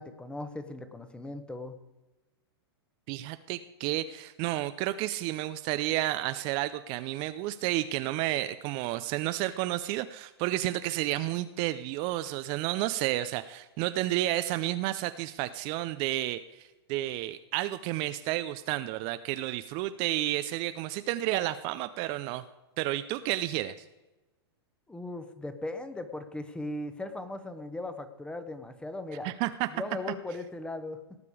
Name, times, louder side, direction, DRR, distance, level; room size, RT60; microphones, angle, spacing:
voice 1, 0.0-1.8 24.9-29.3 29.7-31.0, left 2 dB, 5° left, 10 dB, 1.1 m, -38 dB
voice 2, 3.1-22.4 22.8-23.7 29.2-29.7, right 15 dB, 40° right, 12 dB, 0.5 m, -31 dB
18.0 x 6.8 x 4.9 m, 1.1 s
hypercardioid pair, 115°, 14 cm